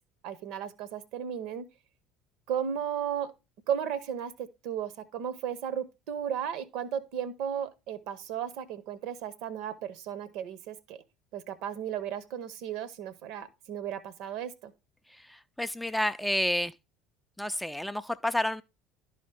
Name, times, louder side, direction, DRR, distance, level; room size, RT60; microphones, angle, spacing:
voice 1, 0.2-1.7 2.5-3.3 3.7-11.0 11.3-14.7, right 9 dB, 55° right, 0.8 m, -35 dB
voice 2, 15.3-16.7 17.4-18.6, left 1 dB, 5° left, 0.4 m, -30 dB
11.5 x 4.9 x 3.3 m
figure-of-eight pair, 65°, 0 cm